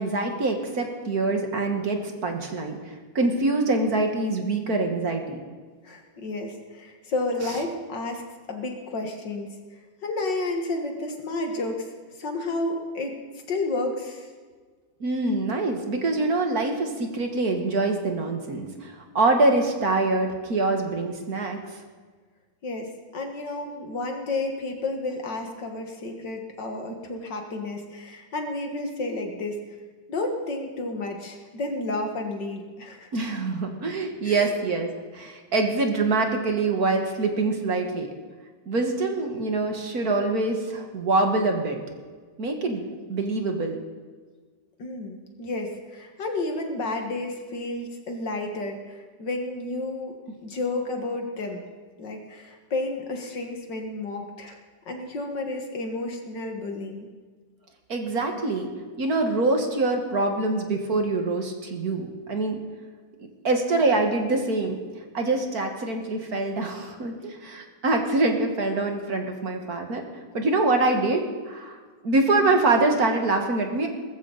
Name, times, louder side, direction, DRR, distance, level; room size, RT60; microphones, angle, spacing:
voice 1, 0.0-5.4 15.0-21.6 33.1-38.1 38.7-41.8 42.4-43.8 57.9-58.7 59.0-62.6 63.4-64.8 65.1-70.0 70.3-71.8 72.0-73.9, right 3 dB, 50° right, 4 dB, 2.1 m, -25 dB
voice 2, 5.8-8.2 8.5-9.6 10.0-11.9 12.2-13.2 13.5-14.3 22.6-29.6 30.1-33.1 34.2-34.5 44.8-50.1 50.4-51.6 52.0-54.6 54.9-57.1, left 2 dB, 65° left, 3 dB, 2.4 m, -31 dB
20.0 x 14.5 x 4.1 m, 1.5 s
omnidirectional pair, 2.1 m